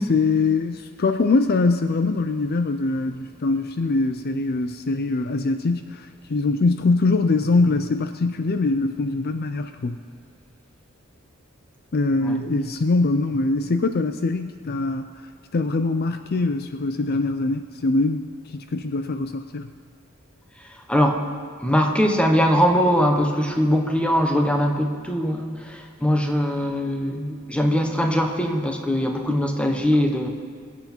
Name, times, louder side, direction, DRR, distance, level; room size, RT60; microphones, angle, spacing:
voice 1, 0.1-10.0 11.9-15.1 15.5-18.3 18.5-19.7, left 3 dB, 50° left, 9 dB, 0.5 m, -23 dB
voice 2, 20.9-21.2 21.6-30.3, equal, 5° left, 3 dB, 1.2 m, -21 dB
22.5 x 8.2 x 4.5 m, 2.2 s
head